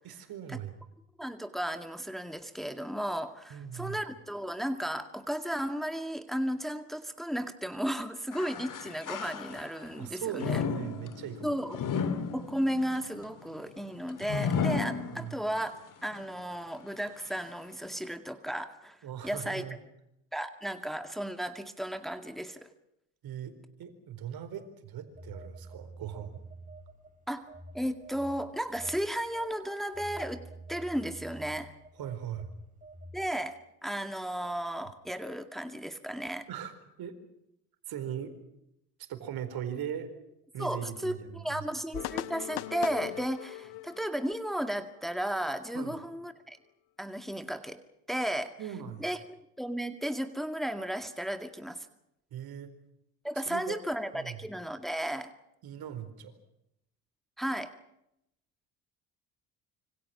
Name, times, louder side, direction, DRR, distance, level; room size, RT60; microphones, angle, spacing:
voice 1, 0.0-0.7 3.5-4.0 10.0-11.5 15.1-15.3 19.0-19.8 23.2-26.4 32.0-32.5 36.5-36.7 37.0-37.2 37.9-38.3 39.0-40.1 40.5-41.6 45.7-46.0 48.6-49.1 52.3-52.7 53.5-53.8 54.1-54.4 55.6-56.3, right 9 dB, 60° right, 9 dB, 4.4 m, -39 dB
voice 2, 1.2-10.6 11.4-11.9 12.3-19.0 19.2-19.6 20.3-22.7 27.3-27.5 27.7-31.7 33.1-36.5 40.6-46.6 47.0-47.8 48.1-48.5 49.0-51.9 53.2-55.3 57.4-57.7, equal, ahead, 8 dB, 2.1 m, -34 dB
sound 1, 8.3-9.9 10.4-15.6 16.1-16.2 17.1-17.2, left 6 dB, 50° left, 2.6 m, -34 dB
Telephone, 25.1-27.1 27.5-33.3, right 2 dB, 20° right, 5.1 m, -48 dB
sound 2, 41.9-45.6, left 16 dB, 65° left, 1.4 m, -40 dB
26.5 x 25.5 x 6.0 m, 0.82 s
hypercardioid pair, 60°, 42 cm